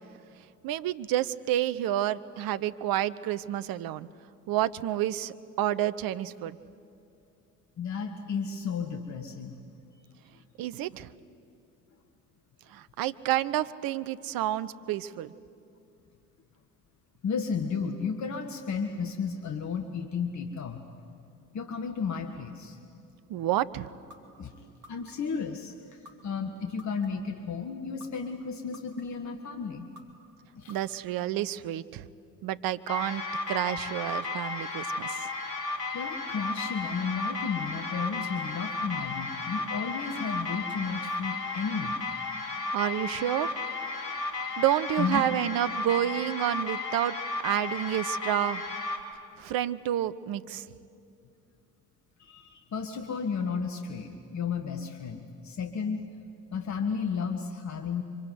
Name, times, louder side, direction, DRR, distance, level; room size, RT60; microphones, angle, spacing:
voice 1, 0.6-4.1 4.5-6.6 10.6-11.1 12.7-15.3 23.3-23.9 30.7-32.1 32.4-35.3 42.7-43.6 44.6-47.2 47.4-48.6 49.4-50.6, right 12 dB, 45° right, 14 dB, 0.9 m, -29 dB
voice 2, 7.8-9.6 17.2-20.8 21.5-22.8 24.4-24.5 24.9-29.9 30.5-30.8 35.9-42.0 45.0-45.3 52.2-56.0 56.5-58.0, left 5 dB, 35° left, 6 dB, 1.7 m, -33 dB
sound 1, 24.1-24.2 24.8-25.4 26.1-26.2 26.8-27.3 28.0-28.1 28.7-29.3 30.0-30.1 30.7-31.2, left 1 dB, 85° right, 2.5 m, -50 dB
sound 2, 32.9-49.0, left 3 dB, 85° left, 1.7 m, -34 dB
24.5 x 24.0 x 9.5 m, 2.6 s
figure-of-eight pair, 55°, 47 cm